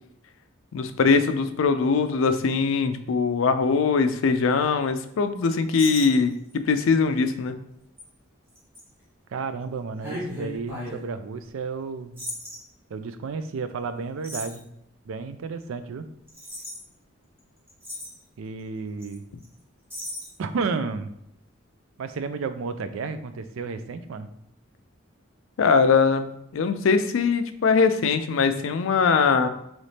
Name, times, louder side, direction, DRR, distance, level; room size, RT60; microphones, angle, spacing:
voice 1, 0.7-7.5 25.6-29.5, left 5 dB, 75° left, 9 dB, 0.4 m, -21 dB
sound 1, 5.7-6.5 7.1-7.3 8.0-8.1 8.5-8.8 10.0-11.0 12.2-12.6 14.2-14.6 16.3-16.8 17.4-17.5 17.7-18.2 19.0-19.2 19.4-19.5 19.9-20.3, left 1 dB, 10° right, 1.1 m, -36 dB
voice 2, 9.3-12.3 12.9-14.7 15.0-16.1 18.4-19.2 20.4-21.1 22.0-24.3, right 4 dB, 80° right, 11 dB, 0.4 m, -32 dB
4.0 x 3.1 x 3.3 m, 0.75 s
head